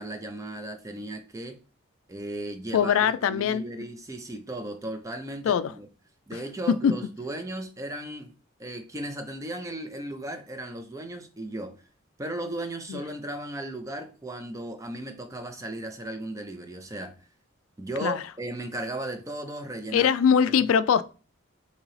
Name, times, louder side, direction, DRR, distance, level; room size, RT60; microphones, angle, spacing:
voice 1, 0.0-1.6 2.1-5.9 6.3-8.3 8.6-11.8 12.2-17.1 17.8-20.1, right 1 dB, 15° right, 0.4 m, -36 dB
voice 2, 2.7-3.6 5.5-5.7 6.8-6.9 12.9-13.0 18.0-18.2 19.9-21.0, left 7 dB, 75° left, 0.3 m, -22 dB
3.8 x 2.7 x 3.1 m
head